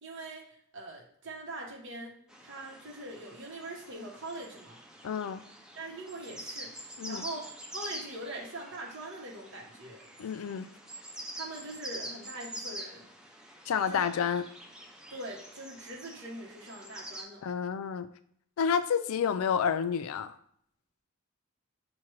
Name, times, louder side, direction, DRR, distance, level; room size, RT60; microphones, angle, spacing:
voice 1, 0.0-4.8 5.8-10.0 11.2-13.1 13.9-14.1 15.1-17.4, right 2 dB, 60° right, -1 dB, 0.8 m, -43 dB
sound 1, 2.3-17.2, right 1 dB, 5° right, 0.3 m, -46 dB
voice 2, 5.0-5.4 7.0-7.3 10.2-10.7 13.7-14.4 17.4-18.1 18.6-20.4, left 7 dB, 85° left, 11 dB, 0.3 m, -29 dB
5.9 x 2.2 x 3.1 m, 0.65 s
head